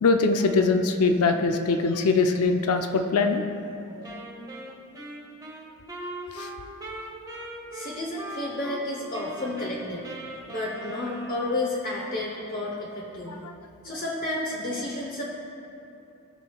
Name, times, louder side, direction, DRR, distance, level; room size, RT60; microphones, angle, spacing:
voice 1, 0.0-3.4 6.3-6.5, left 4 dB, 75° left, 6 dB, 0.5 m, -22 dB
Wind instrument woodwind instrument, 4.0-8.8 9.1-11.8, right 1 dB, 15° right, 1.0 m, -40 dB
voice 2, 7.7-13.5 13.8-15.2, left 2 dB, 40° left, -3 dB, 0.9 m, -31 dB
16.5 x 6.0 x 2.3 m, 2.7 s
head